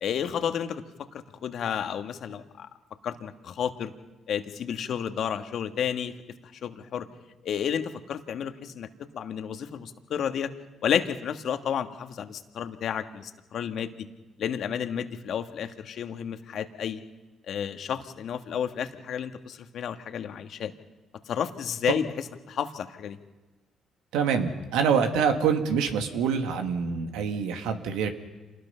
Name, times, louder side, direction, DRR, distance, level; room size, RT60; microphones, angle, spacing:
voice 1, 0.0-0.8 1.1-2.7 3.0-3.9 4.3-6.1 6.4-7.1 7.4-8.9 9.1-10.5 10.8-14.1 14.4-17.0 17.5-20.7 21.3-22.1 22.5-23.2, left 8 dB, 65° left, 8 dB, 1.5 m, -31 dB
voice 2, 24.1-28.1, right 6 dB, 85° right, 6 dB, 2.0 m, -25 dB
27.5 x 19.5 x 5.7 m, 1.2 s
supercardioid pair, 60°, 0 cm